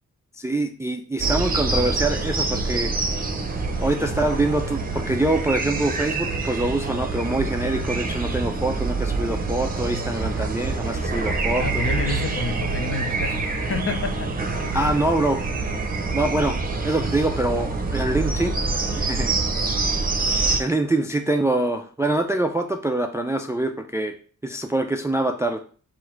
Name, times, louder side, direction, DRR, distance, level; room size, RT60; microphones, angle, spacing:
voice 1, 0.3-2.9 3.8-11.8 14.7-15.5 16.1-16.6 16.8-18.6 19.0-19.3 20.6-24.2 24.4-25.6, right 2 dB, 10° right, 0.3 m, -24 dB
sound 1, 1.2-20.6, right 3 dB, 30° right, 0.7 m, -26 dB
voice 2, 11.6-14.6 16.5-16.6, left 4 dB, 45° left, 0.7 m, -29 dB
3.9 x 2.6 x 4.3 m
cardioid pair, 80°, 31 cm